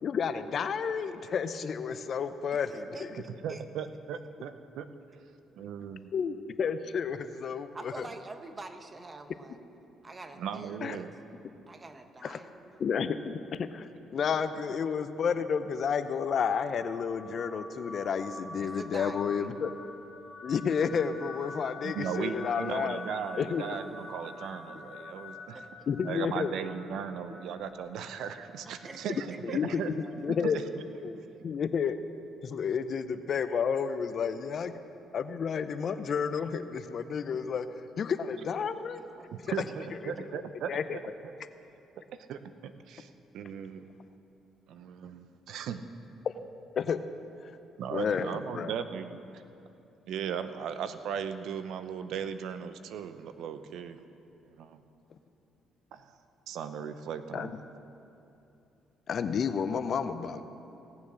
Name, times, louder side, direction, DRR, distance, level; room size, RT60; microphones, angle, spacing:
voice 1, 0.0-3.1 6.1-8.1 10.8-11.0 12.2-12.4 12.8-13.3 13.6-19.7 20.4-23.0 23.4-23.6 25.9-26.5 29.5-29.8 30.2-30.6 31.0-32.0 32.4-34.8 35.1-37.7 38.0-39.0 40.0-40.1 40.7-41.0 46.2-46.3 46.8-47.0 47.4-47.5 47.9-48.7 57.3-57.5 59.1-60.4, left 6 dB, 55° left, 11 dB, 0.6 m, -31 dB
voice 2, 2.5-3.6 7.7-9.6 10.0-11.1 11.7-12.8 18.6-19.5 25.5-25.9 28.6-29.8 39.0-39.5 39.9-40.0, right 3 dB, 30° right, 7 dB, 1.0 m, -46 dB
voice 3, 3.4-4.9 5.5-6.1 10.4-11.1 21.8-25.6 26.0-29.9 30.4-30.6 39.3-41.3 42.3-43.9 44.7-45.9 47.8-49.4 50.1-54.0 54.5-54.8 55.9-56.1 56.5-57.5, right 7 dB, 75° right, 10 dB, 0.6 m, -37 dB
sound 1, 15.3-30.5, left 2 dB, 15° left, 2.3 m, -46 dB
17.5 x 7.1 x 6.3 m, 2.8 s
supercardioid pair, 75°, 0 cm